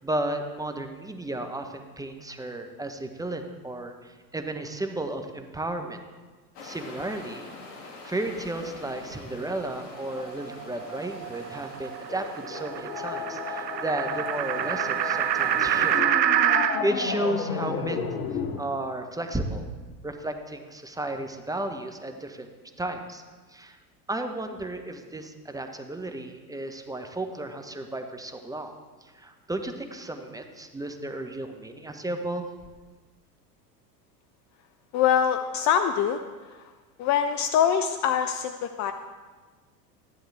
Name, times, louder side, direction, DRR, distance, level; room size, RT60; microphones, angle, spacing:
voice 1, 0.0-6.0 6.6-7.5 8.0-16.0 16.5-18.0 18.3-19.7 20.0-22.5 22.8-23.2 23.5-23.8 24.1-32.5, right 1 dB, 5° right, 5 dB, 1.0 m, -33 dB
sound 1, 6.5-16.0, left 3 dB, 55° left, 2.5 m, -44 dB
sound 2, 10.1-16.8, right 11 dB, 80° right, 0.7 m, -27 dB
sound 3, 12.1-18.6, left 6 dB, 80° left, 1.2 m, -33 dB
voice 2, 34.9-36.7 37.0-38.9, left 8 dB, 35° left, 9 dB, 0.6 m, -24 dB
14.0 x 11.0 x 3.4 m, 1.3 s
hypercardioid pair, 90°, 50 cm